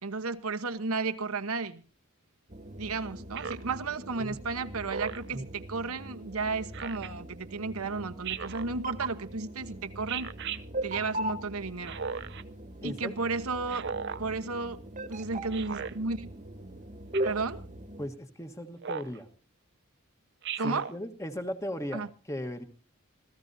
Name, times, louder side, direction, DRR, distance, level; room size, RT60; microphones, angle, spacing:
voice 1, 0.0-1.8 2.8-10.3 10.8-12.0 12.8-13.9 14.2-14.8 15.1-16.4 17.2-17.6 20.6-20.9 21.9-22.1, right 4 dB, 75° right, 1.1 m, -33 dB
sound 1, 2.5-18.1, right 1 dB, 35° right, 1.4 m, -40 dB
Speech synthesizer, 3.4-3.7 4.9-5.3 6.7-7.1 8.2-8.7 10.1-10.6 11.8-12.4 13.7-14.2 15.5-15.9 17.1-17.5 18.8-19.2 20.4-20.9, right 7 dB, 50° right, 0.6 m, -36 dB
voice 2, 12.8-13.1 18.0-19.3 20.6-22.6, equal, 15° left, 1.3 m, -37 dB
27.0 x 15.5 x 2.7 m
head